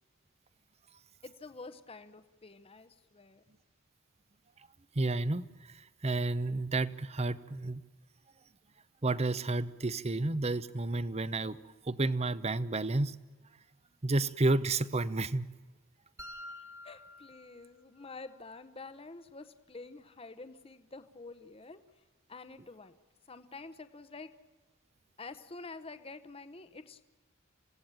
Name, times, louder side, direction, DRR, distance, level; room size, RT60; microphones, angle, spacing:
voice 1, 1.2-3.4 16.8-22.0 22.3-22.9 23.3-24.3 25.2-27.0, left 3 dB, 25° left, 10 dB, 0.9 m, -48 dB
voice 2, 4.9-7.8 9.0-11.6 11.8-13.2 14.0-15.5, right 2 dB, 30° right, 16 dB, 0.8 m, -31 dB
sound 1, 16.2-18.2, left 1 dB, 15° right, 1.7 m, -49 dB
27.0 x 17.0 x 8.9 m, 1.3 s
head